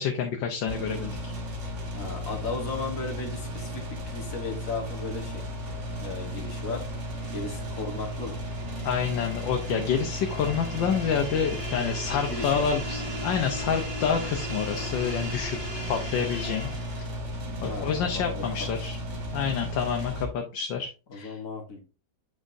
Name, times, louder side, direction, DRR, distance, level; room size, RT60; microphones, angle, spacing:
voice 1, 0.0-1.3 8.8-15.6 15.9-16.7 17.6-19.0 19.3-21.4, left 7 dB, 85° left, 3 dB, 1.5 m, -28 dB
sound 1, 0.7-20.3, equal, 45° right, 1.4 m, -35 dB
voice 2, 1.9-5.4 6.0-6.8 7.3-8.4 12.3-12.6 17.7-18.4 21.1-21.8, left 3 dB, 50° left, 2 dB, 1.7 m, -35 dB
sound 2, 5.2-17.2, equal, 20° right, 1.7 m, -39 dB
7.4 x 5.1 x 2.6 m, 0.32 s
omnidirectional pair, 2.0 m